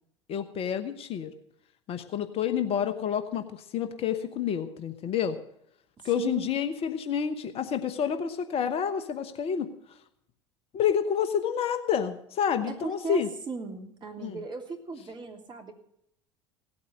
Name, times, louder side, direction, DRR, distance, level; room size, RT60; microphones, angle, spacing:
voice 1, 0.3-1.3 1.9-5.4 6.0-10.0 10.7-13.3 14.2-14.4, left 8 dB, 40° left, 9 dB, 1.2 m, -29 dB
voice 2, 6.0-6.5 12.7-15.7, right 4 dB, 30° right, 2 dB, 3.1 m, -37 dB
17.5 x 8.6 x 6.6 m, 0.73 s
figure-of-eight pair, 65°, 15 cm